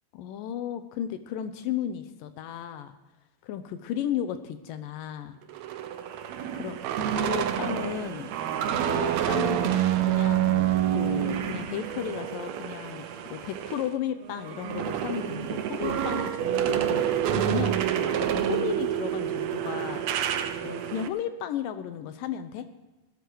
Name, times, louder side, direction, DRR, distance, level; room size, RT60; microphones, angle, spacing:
voice 1, 0.1-3.0 3.4-5.4 6.5-6.8 7.2-8.3 8.9-13.0 13.3-20.0 20.6-22.7, left 10 dB, 75° left, 10 dB, 2.3 m, -34 dB
sound 1, 5.5-13.9 14.2-21.1, right 10 dB, 80° right, 1.5 m, -28 dB
17.0 x 12.5 x 4.6 m, 1.1 s
omnidirectional pair, 4.3 m